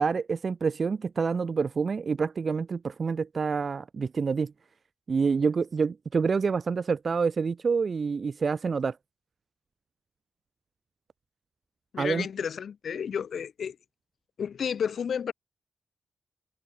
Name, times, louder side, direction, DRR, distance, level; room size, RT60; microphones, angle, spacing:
voice 1, 0.0-4.5 5.1-9.0 12.0-12.3, right 5 dB, 55° right, 0.4 m, -27 dB
voice 2, 11.9-13.8 14.4-15.3, left 7 dB, 75° left, 1.7 m, -31 dB
cardioid pair, 50°, 0 cm